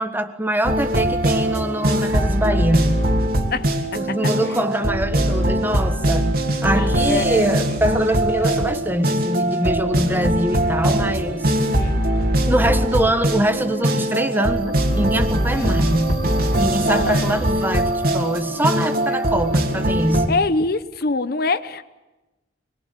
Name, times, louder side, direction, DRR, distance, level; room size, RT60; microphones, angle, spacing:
voice 1, 0.0-3.0 3.9-11.5 12.5-16.2 16.6-20.4, right 1 dB, 10° right, 9 dB, 1.5 m, -23 dB
sound 1, 0.6-20.3, right 1 dB, 55° right, 3.0 m, -21 dB
voice 2, 6.7-7.5 8.4-8.6 11.6-12.0 15.6-15.8 16.9-17.4 20.3-21.8, left 3 dB, 55° left, 13 dB, 0.9 m, -25 dB
24.0 x 22.5 x 9.7 m, 1.1 s
head